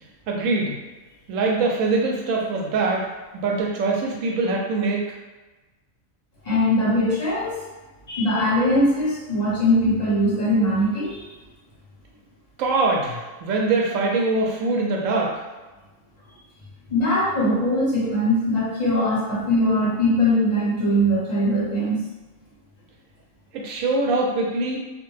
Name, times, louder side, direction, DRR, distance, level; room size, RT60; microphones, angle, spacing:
voice 1, 0.3-0.8 1.3-3.1 3.3-5.0 12.6-15.3 23.5-24.8, right 3 dB, 85° right, -1 dB, 1.0 m, -23 dB
voice 2, 6.4-7.5 8.1-11.3 16.9-22.0, left 1 dB, 35° left, -7 dB, 0.9 m, -21 dB
2.4 x 2.1 x 3.1 m, 1.2 s
omnidirectional pair, 1.3 m